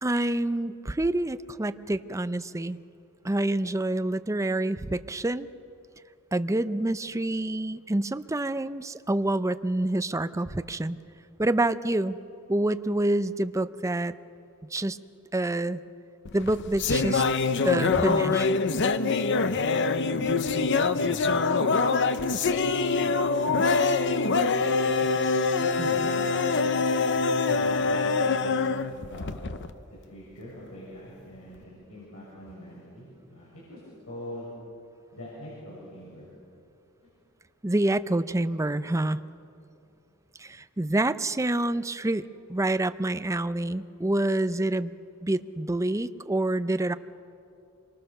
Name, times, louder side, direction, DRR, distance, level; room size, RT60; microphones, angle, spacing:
voice 1, 0.0-2.8 3.2-5.5 6.3-11.0 11.4-12.2 12.5-14.1 14.7-15.0 15.3-15.8 16.3-17.2 17.6-18.5 25.8-26.1 37.6-39.2 40.4-42.2 42.5-44.9 45.2-47.0, right 1 dB, 15° right, 12 dB, 0.5 m, -27 dB
sound 1, 16.3-29.7, left 4 dB, 55° left, 0.9 m, -24 dB
voice 2, 20.2-21.5 22.3-23.2 25.6-29.3 29.9-33.8 34.1-34.5 35.1-36.3 37.0-37.1, equal, 75° left, -6 dB, 6.7 m, -44 dB
26.5 x 23.5 x 6.7 m, 2.6 s
head